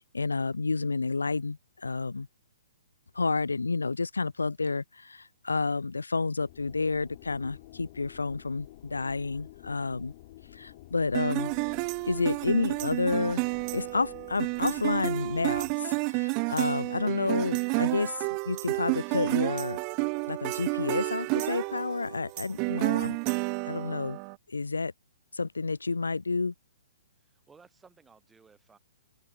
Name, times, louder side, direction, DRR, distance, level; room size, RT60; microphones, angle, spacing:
voice 1, 0.1-2.3 3.1-10.1 10.5-11.5 12.1-13.4 13.7-19.8 20.3-23.2 23.6-24.2 24.5-24.9 25.3-26.5, left 3 dB, 90° left, 0.4 m, -30 dB
sound 1, 6.4-15.7, left 17 dB, 45° left, 1.6 m, -51 dB
sound 2, 11.1-24.3, right 39 dB, 35° right, 0.3 m, -30 dB
voice 2, 27.2-28.8, right 5 dB, 10° right, 2.9 m, -58 dB
open air
hypercardioid pair, 125°, 0 cm